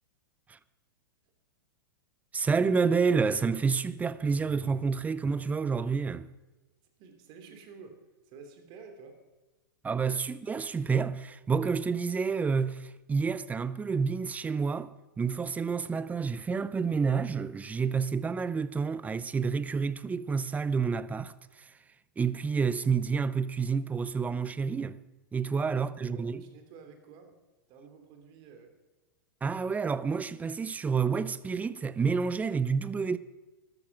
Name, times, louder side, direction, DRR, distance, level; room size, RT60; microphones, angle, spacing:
voice 1, 2.3-6.3 9.8-21.7 22.2-25.0 25.3-26.5 29.4-33.2, right 5 dB, 15° right, 0.5 m, -29 dB
voice 2, 7.0-9.2 10.2-10.3 25.6-27.4 27.7-28.8, right 5 dB, 40° right, 3.0 m, -51 dB
13.0 x 13.0 x 6.0 m
hypercardioid pair, 110°, 12 cm